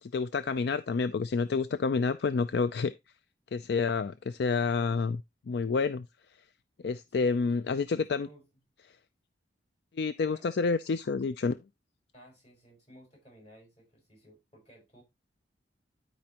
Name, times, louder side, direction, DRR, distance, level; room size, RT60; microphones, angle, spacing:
voice 1, 0.0-2.9 3.5-5.2 5.5-6.0 6.8-8.3 10.0-11.6, left 4 dB, 65° left, 0.4 m, -29 dB
voice 2, 7.1-7.6 8.1-8.5 10.3-10.5 12.1-15.0, right 1 dB, 35° left, 5.3 m, -56 dB
12.0 x 5.2 x 2.9 m
head